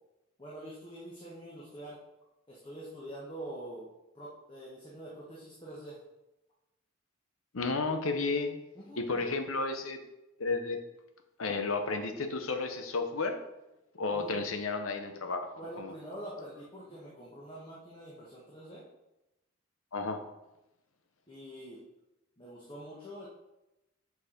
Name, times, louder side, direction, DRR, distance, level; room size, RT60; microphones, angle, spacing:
voice 1, 0.4-2.0 2.5-3.9 4.1-6.0 8.7-9.3 14.1-14.3 15.5-18.8 21.3-21.8 22.4-23.3, right 1 dB, 25° left, -5 dB, 1.4 m, -45 dB
voice 2, 7.5-8.6 9.0-10.0 10.4-10.8 11.4-13.4 13.9-15.9 19.9-20.2, left 3 dB, 75° left, 7 dB, 0.9 m, -32 dB
6.8 x 4.8 x 5.1 m, 0.95 s
head